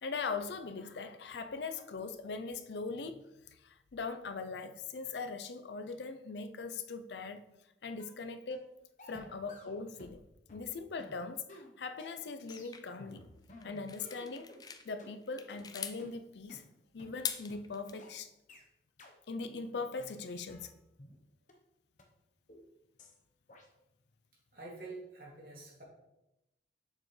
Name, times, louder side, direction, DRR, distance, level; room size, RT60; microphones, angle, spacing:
voice 1, 0.0-7.4 7.8-8.8 9.1-10.2 10.5-13.3 13.6-14.5 14.8-16.6 16.9-18.3 19.3-20.7, left 4 dB, 80° left, 0.5 m, -40 dB
sound 1, 8.0-8.2 8.5-8.7 9.0-10.2 10.5-14.6 15.0-15.1 15.5-15.6 16.0-16.1 16.5-16.6 17.0-17.1 17.5-17.6 18.0-18.1 18.5-18.6 19.0-19.1 19.5-19.7 20.0-21.2 21.5-21.6 22.0-22.1 22.5-22.7 23.0-23.2 23.5-23.7, left 1 dB, 45° left, 0.9 m, -54 dB
sound 2, 12.5-14.9 15.2-16.0 17.0-17.9, left 7 dB, 20° left, 0.4 m, -42 dB
voice 2, 24.5-25.8, right 3 dB, 55° right, 2.3 m, -47 dB
7.2 x 6.4 x 3.2 m
head